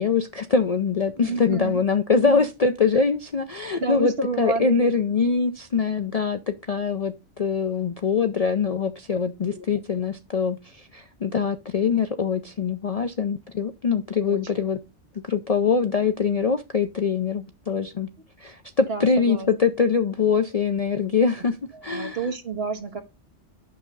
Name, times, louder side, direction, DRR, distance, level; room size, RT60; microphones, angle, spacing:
voice 1, 0.0-4.1 4.4-14.8 15.1-18.1 18.4-21.6 21.8-22.2, left 5 dB, 45° left, 0.5 m, -23 dB
voice 2, 1.2-1.8 2.2-2.5 3.7-4.9 5.2-5.4 9.4-9.6 14.2-14.4 16.3-16.5 18.9-19.5 21.4-21.5 21.7-23.0, right 4 dB, 60° right, 1.5 m, -30 dB
8.6 x 6.3 x 3.9 m
omnidirectional pair, 1.2 m